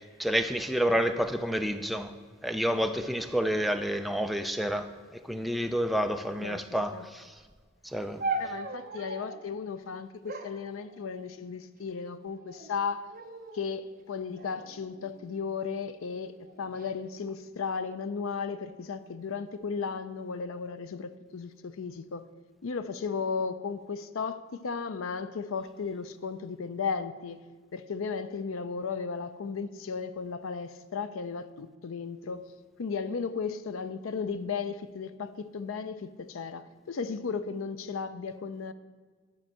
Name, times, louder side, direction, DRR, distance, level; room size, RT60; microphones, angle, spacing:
voice 1, 0.2-2.1 2.4-7.3 7.8-8.2, equal, ahead, 0.4 m, -29 dB
sound 1, 8.2-9.5 10.3-11.5 12.2-12.7 13.1-13.7 14.4-15.6 16.4-16.9, right 3 dB, 45° right, 0.9 m, -38 dB
voice 2, 8.4-13.1 13.5-22.3 22.6-27.4 27.7-32.5 32.8-38.7, left 5 dB, 85° left, 0.5 m, -35 dB
11.5 x 4.5 x 7.4 m
head